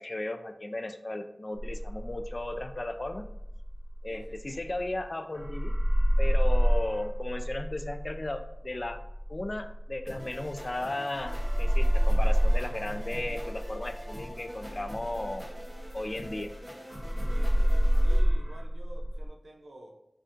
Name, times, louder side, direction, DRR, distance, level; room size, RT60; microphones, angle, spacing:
voice 1, 0.0-3.3 4.0-5.8 6.2-9.0 9.3-15.4 15.9-16.5, left 2 dB, 45° left, 8 dB, 0.3 m, -35 dB
sound 1, 1.6-5.0 5.3-10.8 11.1-16.6 16.9-19.3, equal, 75° left, 0.7 m, -27 dB
voice 2, 4.1-4.4 17.2-19.9, right 1 dB, 90° right, 2 dB, 0.5 m, -50 dB
sound 2, 10.1-18.2, equal, 15° right, 0.9 m, -45 dB
5.5 x 2.5 x 2.5 m, 0.80 s
wide cardioid pair, 50°, 0 cm